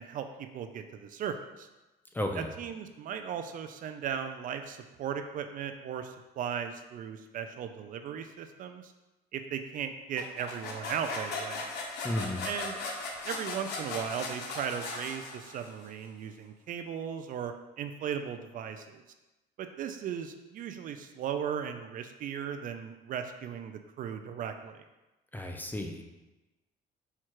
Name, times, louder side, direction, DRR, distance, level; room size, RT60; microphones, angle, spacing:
voice 1, 0.0-1.7 2.4-8.9 9.3-11.7 12.4-12.8 13.2-19.0 19.6-24.8, right 8 dB, 55° right, 7 dB, 0.4 m, -37 dB
voice 2, 2.1-2.5 12.0-12.5 25.3-26.0, left 1 dB, 10° left, 3 dB, 0.4 m, -33 dB
sound 1, 10.2-15.8, left 3 dB, 80° left, 0.8 m, -38 dB
4.5 x 2.4 x 4.4 m, 1.1 s
cardioid pair, 110°, 17 cm